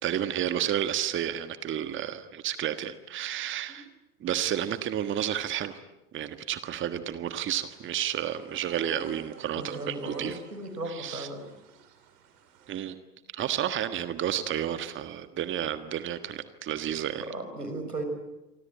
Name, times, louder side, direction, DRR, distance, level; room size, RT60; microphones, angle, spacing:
voice 1, 0.0-3.9 4.2-5.8 6.1-10.4 10.9-11.3 12.7-12.9 13.3-17.3, right 10 dB, 25° right, 11 dB, 1.5 m, -31 dB
sound 1, 7.6-12.8, right 7 dB, 50° right, 5.4 m, -49 dB
voice 2, 9.5-11.4 17.2-18.0, right 2 dB, 85° right, 7 dB, 5.3 m, -36 dB
28.0 x 25.0 x 8.7 m, 0.96 s
figure-of-eight pair, 85°, 46 cm